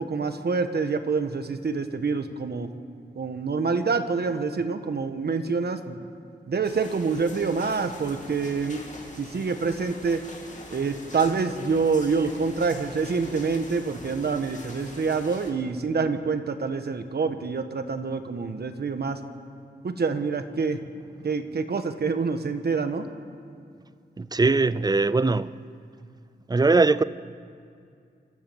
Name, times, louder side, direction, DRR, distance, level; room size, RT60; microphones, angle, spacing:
voice 1, 0.0-2.7 3.1-6.0 6.5-8.8 9.2-10.2 10.7-19.2 19.8-20.8 21.2-23.1, right 4 dB, 60° right, 1.3 m, -26 dB
sound 1, 6.6-15.5, left 2 dB, 40° left, 3.0 m, -44 dB
voice 2, 24.2-25.5 26.5-27.0, right 3 dB, 20° right, 0.5 m, -21 dB
26.0 x 14.0 x 7.2 m
wide cardioid pair, 130°, 18 cm